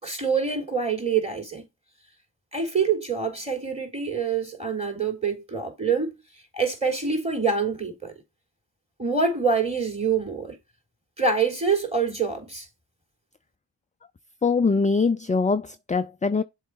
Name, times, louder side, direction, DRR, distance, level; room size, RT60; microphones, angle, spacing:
voice 1, 0.0-1.6 2.5-6.1 6.5-8.1 9.0-10.6 11.2-12.7, right 5 dB, 15° right, 3.4 m, -25 dB
voice 2, 14.4-16.4, left 4 dB, 15° left, 0.4 m, -23 dB
7.2 x 3.6 x 4.7 m
cardioid pair, 65°, 48 cm